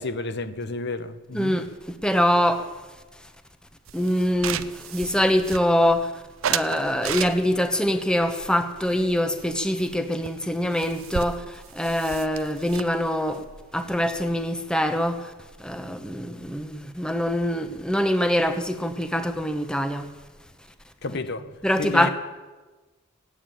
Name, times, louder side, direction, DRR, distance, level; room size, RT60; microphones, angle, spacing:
voice 1, 0.0-1.6 21.0-21.4 21.8-22.1, left 3 dB, 50° left, 0.9 m, -31 dB
voice 2, 1.3-1.6 2.0-2.6 3.9-4.6 4.9-6.1 6.4-11.4 11.8-13.4 13.7-15.2 15.6-20.1 21.6-22.1, equal, 5° left, 0.9 m, -24 dB
sound 1, 3.9-6.0 6.4-7.7 8.3-9.6 9.8-10.0 10.3-10.4 10.6-14.4, right 9 dB, 65° right, 0.5 m, -34 dB
17.0 x 8.7 x 9.0 m
head